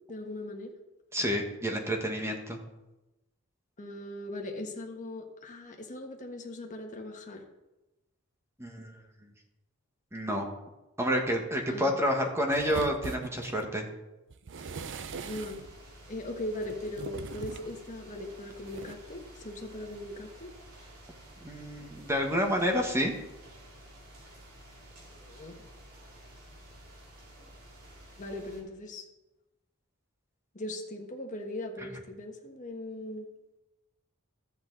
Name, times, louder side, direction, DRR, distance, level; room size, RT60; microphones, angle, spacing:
voice 1, 0.1-0.7 3.8-7.4 11.7-11.9 15.2-15.6 16.1-20.5 25.1-25.7 27.4-27.5 28.2-29.0 30.5-33.3, left 1 dB, 35° left, 1 dB, 1.4 m, -39 dB
voice 2, 1.1-2.6 8.6-8.9 10.1-10.5 11.0-13.9 21.4-23.1, equal, 10° right, 2 dB, 1.3 m, -29 dB
sound 1, 12.5-13.7 14.3-15.8 16.6-17.8 18.7-18.9, right 4 dB, 60° right, 0.5 m, -41 dB
sound 2, 14.5-28.6, right 1 dB, 85° right, 2.8 m, -52 dB
13.0 x 8.1 x 3.9 m, 0.99 s
head